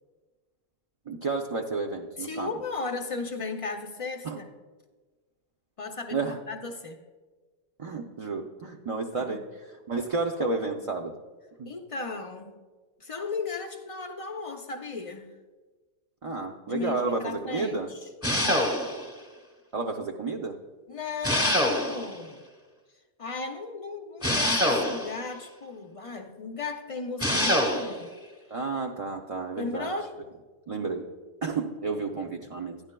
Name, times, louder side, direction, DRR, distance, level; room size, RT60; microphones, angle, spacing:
voice 1, 1.1-2.5 4.2-4.4 6.1-6.4 7.8-9.4 9.9-11.1 11.6-11.7 16.2-17.9 19.7-20.6 28.5-29.9 30.7-31.1 31.4-32.8, right 3 dB, 55° right, 1 dB, 0.4 m, -31 dB
voice 2, 2.2-4.5 5.8-7.0 9.1-9.4 11.7-12.6 13.0-15.4 16.7-18.1 18.4-18.8 20.9-22.4 23.2-28.1 29.6-30.1, left 4 dB, 50° left, 5 dB, 0.4 m, -36 dB
sound 1, 18.2-19.1 21.2-22.2 24.2-25.2 27.2-28.0, equal, 15° left, 0.9 m, -25 dB
12.5 x 10.0 x 2.2 m, 1.3 s
omnidirectional pair, 1.2 m